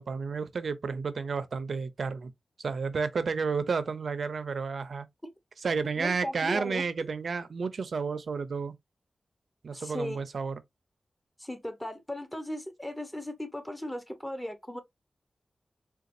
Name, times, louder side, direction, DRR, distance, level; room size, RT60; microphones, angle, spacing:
voice 1, 0.0-2.3 2.6-5.1 5.6-8.8 9.6-10.6, right 5 dB, 75° right, 0.5 m, -31 dB
voice 2, 6.0-6.8 9.7-10.2 11.4-14.8, equal, 10° left, 0.9 m, -36 dB
3.9 x 2.3 x 2.6 m
cardioid pair, 60°, 0 cm